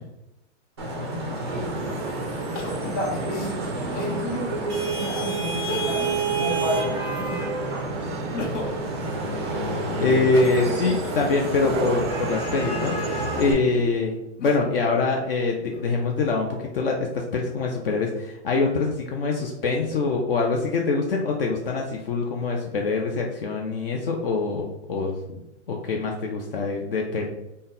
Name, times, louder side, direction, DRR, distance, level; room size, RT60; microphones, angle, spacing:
Vehicle horn car horn honking / Traffic noise roadway noise, 0.8-13.5, right 2 dB, 25° right, 0.4 m, -29 dB
voice 1, 1.3-7.7 13.5-13.8, equal, 10° left, -7 dB, 1.0 m, -32 dB
sound 1, 1.5-13.3, right 6 dB, 90° right, 0.5 m, -35 dB
Crying sobbing, 2.5-4.2 4.8-4.9 5.5-6.2 6.6-7.6 8.1-12.1 12.8-14.9 15.4-16.2, left 2 dB, 80° left, 1.0 m, -37 dB
voice 2, 10.0-13.1 13.4-16.5 16.7-25.4 25.7-27.3, left 3 dB, 50° left, 1 dB, 0.5 m, -24 dB
4.0 x 2.1 x 3.7 m, 0.93 s
supercardioid pair, 175°, 35 cm